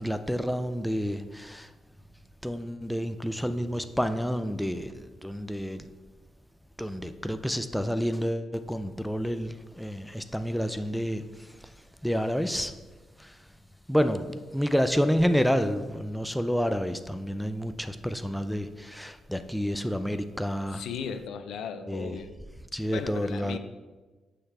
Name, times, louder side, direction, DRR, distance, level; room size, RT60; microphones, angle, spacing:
voice 1, 0.0-1.7 2.4-5.9 6.8-11.7 12.0-12.7 13.2-13.3 13.9-20.8 21.9-22.2 22.7-23.6, equal, ahead, 9 dB, 0.4 m, -29 dB
voice 2, 20.7-22.3 22.9-23.6, left 7 dB, 85° left, 8 dB, 0.5 m, -36 dB
6.5 x 5.7 x 3.3 m, 1.3 s
cardioid pair, 95°, 0 cm